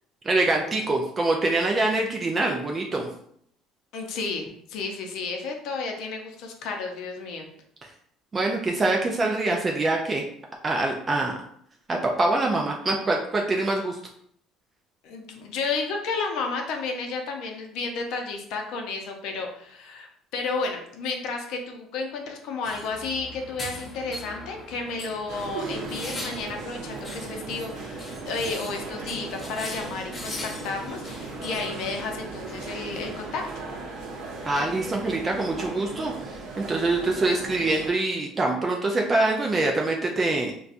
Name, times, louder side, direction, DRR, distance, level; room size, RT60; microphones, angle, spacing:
voice 1, 0.2-3.1 8.3-10.2 10.6-11.3 11.9-14.0 34.5-40.5, right 2 dB, 20° right, 0 dB, 0.3 m, -24 dB
voice 2, 3.9-7.5 15.0-33.6, left 4 dB, 65° left, 3 dB, 0.6 m, -32 dB
sound 1, 22.6-33.2, left 1 dB, 20° left, 0.6 m, -41 dB
sound 2, 25.3-37.9, right 3 dB, 70° right, 0.7 m, -37 dB
4.0 x 2.2 x 2.5 m, 0.67 s
cardioid pair, 145°, 0 cm